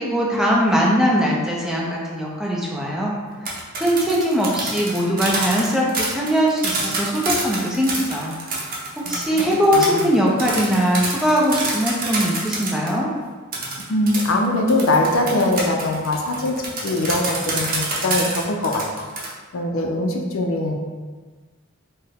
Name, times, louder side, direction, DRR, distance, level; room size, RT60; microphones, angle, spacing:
voice 1, 0.0-3.1 3.4-8.3 8.6-13.1, equal, 5° right, -4 dB, 0.5 m, -21 dB
sound 1, 3.3-12.9 13.5-19.3, right 2 dB, 45° right, 0.7 m, -27 dB
voice 2, 9.7-10.1 13.9-19.0 19.5-20.8, left 1 dB, 70° left, 1 dB, 0.5 m, -22 dB
4.2 x 2.1 x 3.4 m, 1.4 s
head